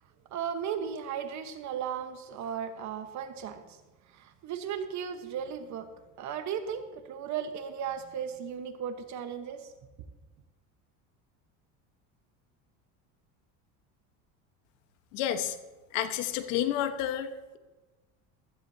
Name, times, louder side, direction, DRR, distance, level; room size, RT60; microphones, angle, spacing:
voice 1, 0.3-3.8 4.1-5.9 6.2-9.7, right 8 dB, 50° right, 8 dB, 1.3 m, -36 dB
voice 2, 15.1-15.6 15.9-17.6, left 10 dB, 90° left, 8 dB, 1.3 m, -30 dB
15.5 x 14.0 x 2.8 m, 1.2 s
cardioid pair, 130°, 37 cm